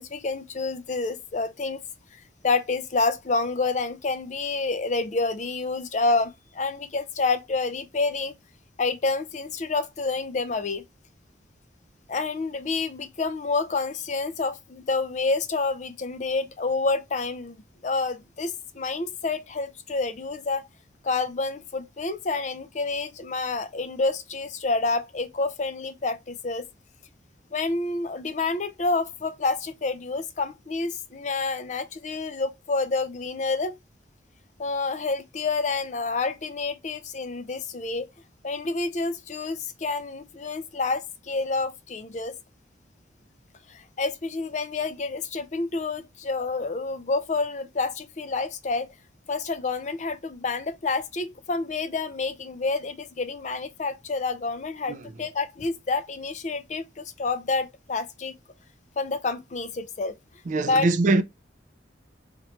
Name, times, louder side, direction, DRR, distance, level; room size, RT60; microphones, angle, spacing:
voice 1, 0.0-1.8 2.1-8.4 8.8-10.8 12.1-20.7 21.0-26.7 27.5-33.7 34.6-38.1 38.4-42.4 43.7-48.9 49.3-58.3 59.0-60.2 60.6-60.9, left 3 dB, 40° left, 0.4 m, -28 dB
voice 2, 60.5-61.2, right 3 dB, 40° right, 0.3 m, -22 dB
3.0 x 2.9 x 4.2 m
head